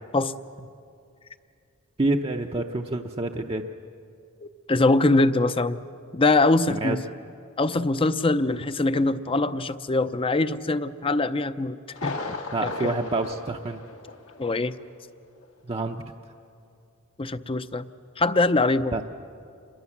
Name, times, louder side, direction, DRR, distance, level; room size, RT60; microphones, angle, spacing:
voice 1, 2.0-3.7 6.7-7.0 12.5-13.8 15.6-16.0 18.9-19.0, right 2 dB, 25° right, 3 dB, 0.7 m, -27 dB
voice 2, 4.4-5.8 6.1-7.1 7.6-12.9 14.4-14.7 17.2-17.9 18.2-19.0, left 2 dB, 25° left, 13 dB, 0.6 m, -23 dB
Thunder, 11.9-14.5 14.8-14.9 15.4-15.5, left 3 dB, 85° left, 2.2 m, -36 dB
27.5 x 22.0 x 7.3 m, 2.5 s
head